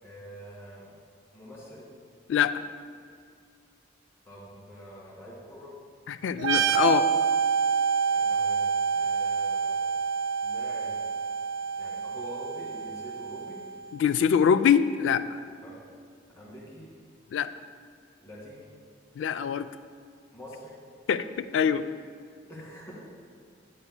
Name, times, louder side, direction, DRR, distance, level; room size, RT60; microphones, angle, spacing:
voice 1, 0.0-0.9 1.3-1.9 4.3-5.7 8.0-9.8 10.4-11.0 11.8-13.6 15.6-15.7 16.4-16.8 18.2-18.7 20.3-20.7 22.5-23.0, equal, 15° left, -7 dB, 2.1 m, -45 dB
voice 2, 2.3-2.6 6.1-7.1 13.9-15.4 17.3-17.5 19.2-19.7 21.1-21.8, left 7 dB, 80° left, 12 dB, 0.3 m, -24 dB
sound 1, 6.4-13.9, right 6 dB, 90° right, 0.5 m, -27 dB
9.6 x 9.4 x 2.2 m, 2.1 s
head